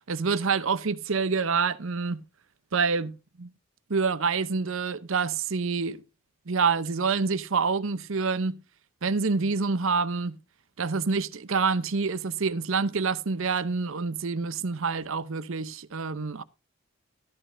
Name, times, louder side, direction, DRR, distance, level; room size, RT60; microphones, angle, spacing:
voice 1, 0.1-2.2 2.7-3.5 3.9-6.0 6.5-8.6 9.0-10.4 10.8-16.4, right 4 dB, 65° right, 0.7 m, -27 dB
13.5 x 12.0 x 2.6 m
head